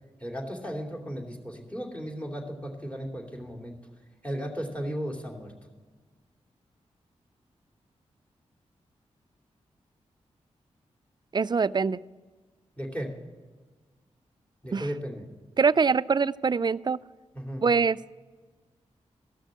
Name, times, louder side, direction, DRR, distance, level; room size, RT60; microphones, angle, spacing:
voice 1, 0.2-3.8 4.2-5.5 12.8-13.1 14.6-15.2 17.3-17.6, equal, 10° left, 1 dB, 2.8 m, -35 dB
voice 2, 11.3-12.0 14.7-14.9 15.6-17.0 17.6-18.0, right 5 dB, 35° right, 19 dB, 0.3 m, -24 dB
14.5 x 6.4 x 7.5 m, 1.4 s
cardioid pair, 40°, 13 cm